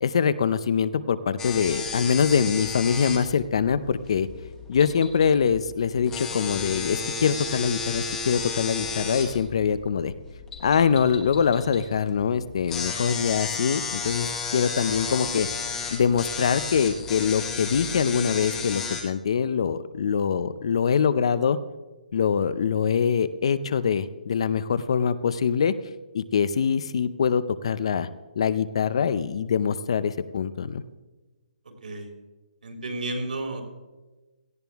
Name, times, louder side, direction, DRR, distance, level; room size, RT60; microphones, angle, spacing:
voice 1, 0.0-4.3 4.7-10.1 10.6-15.5 15.9-21.6 22.1-25.7 26.1-28.1 28.4-30.8, left 6 dB, 40° left, 15 dB, 0.5 m, -24 dB
sound 1, 1.4-19.0, left 5 dB, 10° left, 0.9 m, -33 dB
voice 2, 31.6-32.1 32.6-33.6, right 2 dB, 70° right, 2 dB, 3.6 m, -32 dB
17.5 x 14.0 x 3.5 m, 1.2 s
hypercardioid pair, 175°, 5 cm